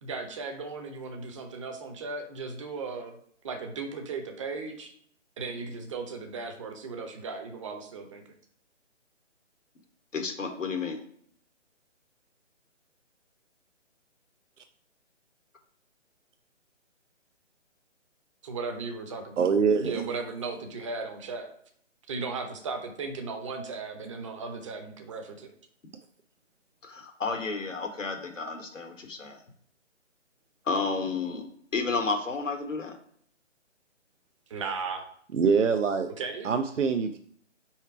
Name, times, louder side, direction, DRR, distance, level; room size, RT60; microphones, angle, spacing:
voice 1, 0.0-3.2 3.4-4.9 5.4-8.2 18.4-19.5 19.8-21.5 22.1-25.5 34.5-35.0 36.2-36.5, right 4 dB, 25° right, 5 dB, 0.8 m, -36 dB
voice 2, 10.1-11.0 26.8-29.4 30.7-31.4 31.7-32.9, left 4 dB, 85° left, 2 dB, 1.3 m, -31 dB
voice 3, 19.4-20.1 35.3-36.1 36.4-37.2, right 5 dB, 75° right, 7 dB, 0.7 m, -24 dB
4.7 x 4.4 x 4.6 m, 0.62 s
figure-of-eight pair, 150°, 37 cm